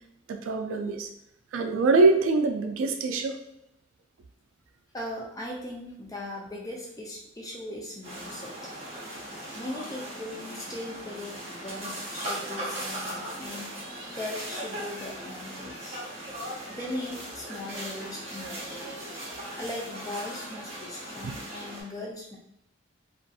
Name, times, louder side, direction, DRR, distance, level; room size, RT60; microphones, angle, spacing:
voice 1, 0.3-1.1 1.5-3.4 21.2-21.3, right 3 dB, 75° right, 6 dB, 0.3 m, -24 dB
voice 2, 4.9-8.7 9.5-13.7 14.1-16.0 16.7-19.0 19.6-22.4, left 1 dB, 15° left, -2 dB, 0.4 m, -39 dB
sound 1, 8.0-21.8, right 1 dB, 30° right, 0.7 m, -38 dB
2.6 x 2.4 x 2.3 m, 0.78 s
head